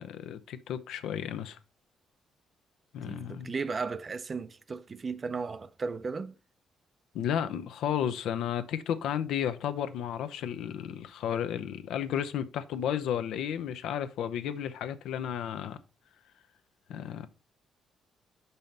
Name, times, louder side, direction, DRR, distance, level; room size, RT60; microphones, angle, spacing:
voice 1, 0.0-1.6 2.9-3.5 7.1-15.8 16.9-17.3, left 9 dB, 80° left, 0.6 m, -33 dB
voice 2, 3.0-6.3, right 4 dB, 35° right, 0.5 m, -35 dB
5.5 x 5.3 x 4.3 m
cardioid pair, 90°, 0 cm